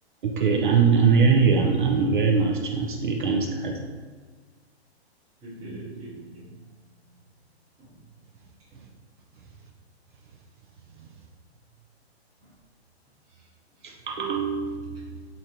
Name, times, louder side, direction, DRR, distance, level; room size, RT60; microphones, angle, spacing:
voice 1, 0.2-3.8 13.8-15.3, right 5 dB, 50° right, 1 dB, 0.4 m, -22 dB
voice 2, 5.4-6.7 7.0-7.2 7.8-8.0 8.7-8.9 11.0-11.1 12.4-12.5 13.3-13.5 13.7-14.0 14.9-15.1, right 2 dB, 10° right, -9 dB, 0.9 m, -44 dB
4.8 x 2.7 x 2.8 m, 1.5 s
hypercardioid pair, 160°, 33 cm